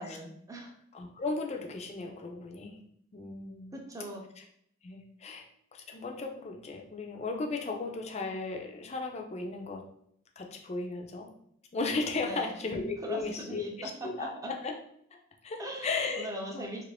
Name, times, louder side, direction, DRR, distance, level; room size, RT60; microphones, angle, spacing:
voice 1, 0.0-0.7 3.7-4.2 12.2-12.7 13.0-14.6 15.6-16.8, equal, 15° right, 0 dB, 0.5 m, -40 dB
voice 2, 0.9-2.8 3.1-3.7 4.8-5.4 5.7-9.8 10.4-11.3 11.7-14.3 14.6-14.7 15.4-16.3 16.5-16.7, left 3 dB, 35° left, 2 dB, 0.4 m, -35 dB
2.9 x 2.5 x 3.3 m, 0.68 s
head